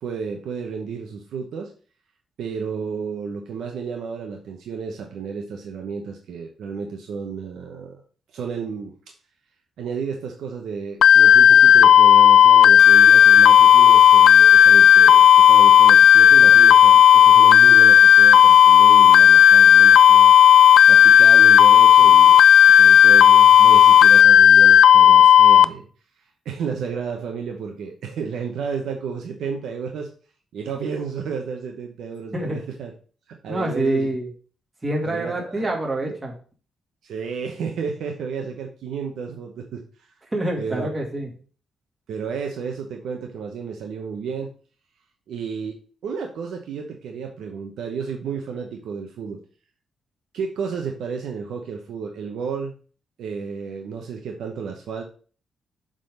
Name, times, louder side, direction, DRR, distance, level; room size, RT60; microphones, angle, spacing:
voice 1, 0.0-1.7 2.4-8.0 8.3-8.9 9.8-20.3 20.9-22.4 22.7-25.9 26.4-30.1 30.5-32.9 33.3-34.1 35.0-35.7 36.0-36.1 37.0-39.8 40.6-40.9 42.1-44.5 45.3-49.4 50.3-52.7 53.2-55.0, right 6 dB, 80° right, 3 dB, 0.9 m, -32 dB
sound 1, 11.0-25.6, left 9 dB, 80° left, 0.3 m, -11 dB
sound 2, 12.8-24.2, left 5 dB, 50° left, 0.9 m, -33 dB
voice 2, 32.3-32.6 33.5-34.3 34.8-36.3 40.3-41.3, right 1 dB, 20° right, 0 dB, 2.3 m, -26 dB
7.4 x 3.8 x 5.2 m, 0.41 s
cardioid pair, 110°, 0 cm